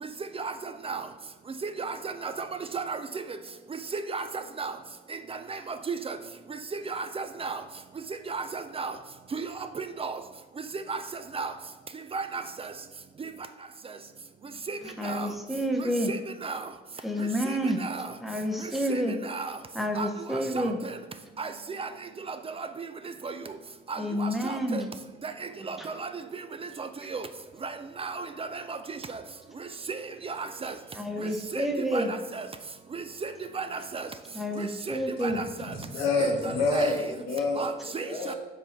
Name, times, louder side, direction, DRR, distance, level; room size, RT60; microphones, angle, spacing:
voice 1, 1.6-2.3 2.7-3.0 3.9-4.7 5.3-6.2 6.9-7.6 8.3-8.9 9.3-9.5 9.8-10.2 10.9-11.0 11.3-11.5 12.1-12.4 14.7-14.8 15.0-15.3 16.1-16.6 17.8-18.1 18.9-19.6 20.0-20.1 20.5-20.7 21.4-21.5 21.8-21.9 22.3-22.7 23.2-23.3 23.9-24.8 25.2-25.3 25.6-26.1 26.8-27.3 27.6-27.7 28.0-29.0 29.9-30.0 30.2-30.7 31.5-31.7 31.9-32.5 32.9-34.1 34.9-35.4 36.2-37.0 37.6-38.3, right 4 dB, 30° right, 9 dB, 0.4 m, -34 dB
voice 2, 15.0-16.1 17.0-17.8 18.2-19.2 19.7-20.8 24.0-24.9 25.8-25.9 31.0-32.1 34.3-35.4, equal, ahead, 3 dB, 0.8 m, -29 dB
voice 3, 35.6-37.7 38.0-38.4, left 3 dB, 90° left, 0 dB, 1.3 m, -27 dB
5.1 x 4.6 x 4.2 m, 1.2 s
cardioid pair, 90°, 20 cm